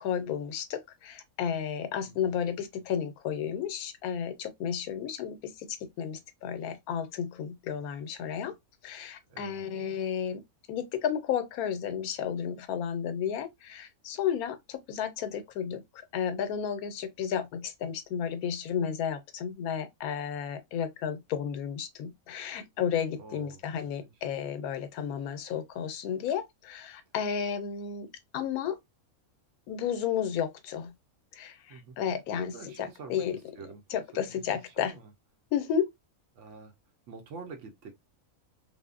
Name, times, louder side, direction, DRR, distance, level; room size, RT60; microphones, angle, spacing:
voice 1, 0.0-8.5 8.8-28.8 29.7-30.9 31.3-33.4 33.9-35.0 35.5-35.9, left 8 dB, 85° left, 1.1 m, -33 dB
voice 2, 9.3-9.6 23.2-23.6 24.0-24.1 31.7-32.0 32.4-33.8 34.1-34.4 34.8-35.1 36.3-36.7 37.1-38.0, right 4 dB, 65° right, 0.9 m, -46 dB
3.5 x 2.0 x 2.3 m
omnidirectional pair, 1.5 m